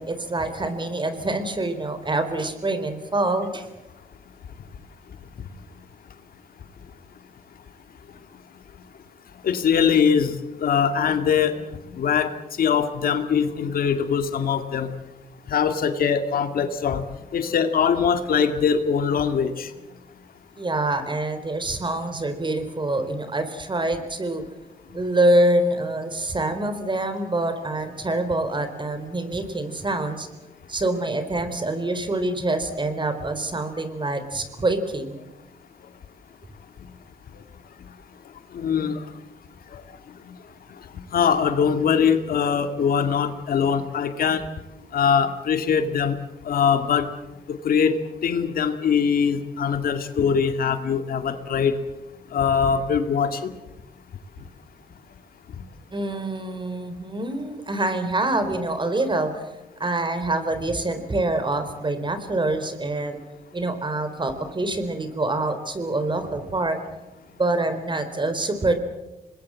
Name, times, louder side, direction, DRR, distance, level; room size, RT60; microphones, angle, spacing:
voice 1, 0.0-3.7 20.6-24.4 24.9-30.3 30.7-35.2 55.9-59.5 59.8-63.2 63.5-66.8 67.4-68.7, right 2 dB, 30° right, 9 dB, 4.1 m, -25 dB
voice 2, 9.4-11.6 11.9-12.3 12.6-14.9 15.5-17.0 17.3-19.7 38.5-39.0 39.7-39.8 41.1-44.4 44.9-46.2 46.5-47.1 47.5-51.8 52.3-53.5, left 7 dB, 70° left, 8 dB, 2.1 m, -22 dB
26.0 x 20.5 x 7.6 m, 1.0 s
cardioid pair, 65°, 16 cm